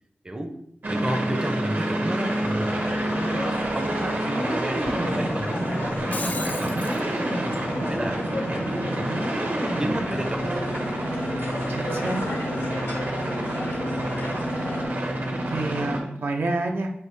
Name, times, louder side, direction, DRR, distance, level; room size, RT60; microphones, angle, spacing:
voice 1, 0.2-0.6 0.9-6.8 7.8-8.9 9.8-10.7, right 1 dB, 20° right, 4 dB, 0.5 m, -32 dB
sound 1, 0.8-16.0, right 1 dB, 60° right, 0.9 m, -28 dB
sound 2, 2.2-14.9, left 2 dB, 85° left, 0.7 m, -34 dB
voice 2, 3.3-3.8 11.7-12.2 13.6-14.1 15.5-16.9, right 2 dB, 75° right, 2 dB, 0.5 m, -30 dB
Shatter, 5.9-7.0, left 2 dB, 50° left, 0.5 m, -34 dB
5.6 x 2.6 x 3.3 m, 0.76 s
wide cardioid pair, 70°, 4 cm